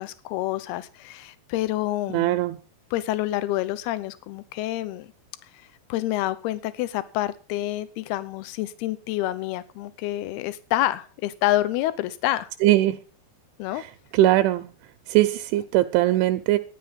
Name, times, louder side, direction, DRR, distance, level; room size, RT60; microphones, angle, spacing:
voice 1, 0.0-2.4 2.9-5.1 5.9-12.5 13.6-13.8, left 15 dB, 75° left, 15 dB, 2.5 m, -28 dB
voice 2, 2.1-2.6 12.6-13.0 13.8-13.9 14.1-14.7 15.1-16.6, right 15 dB, 80° right, 9 dB, 3.0 m, -20 dB
13.5 x 10.0 x 5.4 m, 0.37 s
omnidirectional pair, 5.4 m